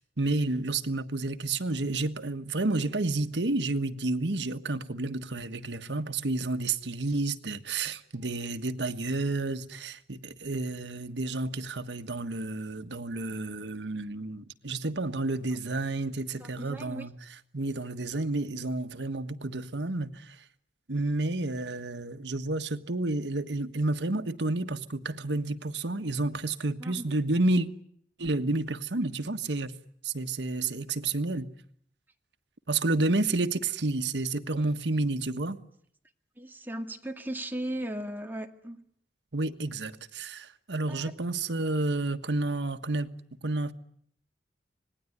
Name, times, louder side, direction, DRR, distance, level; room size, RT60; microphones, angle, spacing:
voice 1, 0.2-17.1 17.5-20.4 20.9-27.7 28.2-29.7 30.0-31.5 32.7-35.6 39.3-43.1 43.4-43.7, right 2 dB, 85° right, 1.4 m, -30 dB
voice 2, 16.4-17.1 26.8-27.1 36.4-38.8 40.9-41.1, right 1 dB, 10° right, 2.0 m, -37 dB
26.5 x 20.0 x 9.6 m
head